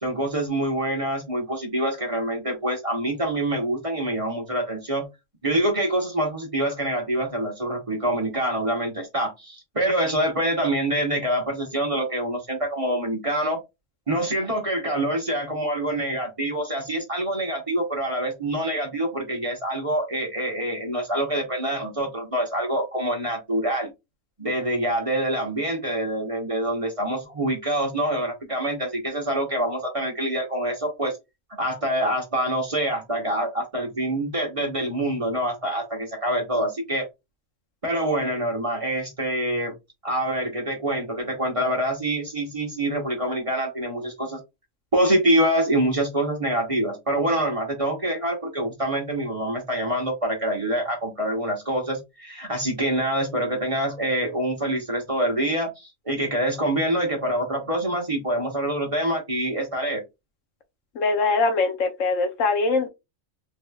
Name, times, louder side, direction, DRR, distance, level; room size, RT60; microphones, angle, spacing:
voice 1, 0.0-5.1 5.4-13.6 14.1-23.9 24.4-31.2 31.5-37.1 37.8-39.7 40.0-44.4 44.9-60.0, right 1 dB, 30° right, 0.9 m, -25 dB
voice 2, 60.9-62.9, left 3 dB, 80° left, 1.1 m, -22 dB
3.6 x 3.0 x 2.3 m
omnidirectional pair, 1.3 m